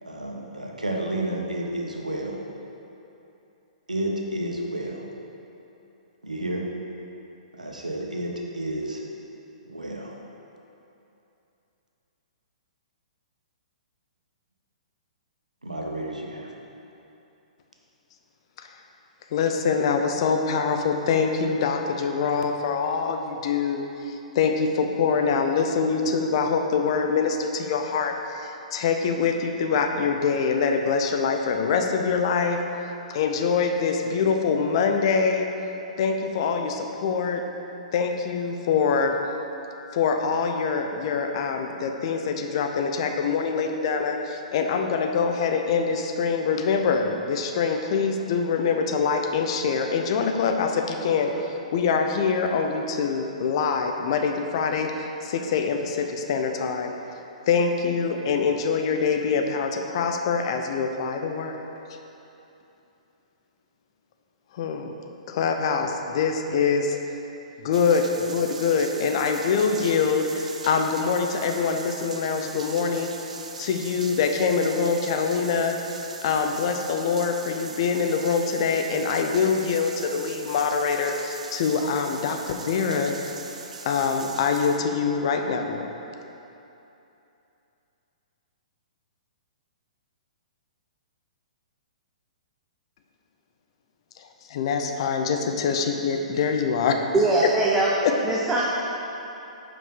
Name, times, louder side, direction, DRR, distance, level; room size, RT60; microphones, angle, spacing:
voice 1, 0.0-2.4 3.9-5.1 6.2-6.7 7.5-9.0 9.7-10.2 15.6-16.5, right 1 dB, 85° right, 0 dB, 0.9 m, -31 dB
voice 2, 19.3-32.6 33.1-35.5 36.0-37.4 37.9-39.1 39.9-56.9 57.5-61.6 64.5-64.9 65.3-67.0 67.6-73.3 73.6-75.8 76.2-83.1 83.8-85.9 94.2-97.0 98.0-98.1, left 5 dB, 45° left, 4 dB, 0.6 m, -24 dB
sound 1, 67.7-84.8, right 4 dB, 65° right, 0.5 m, -40 dB
voice 3, 97.1-97.9 98.2-98.6, right 2 dB, 10° right, -5 dB, 0.7 m, -21 dB
5.4 x 5.3 x 5.2 m, 2.9 s
figure-of-eight pair, 115°, 4 cm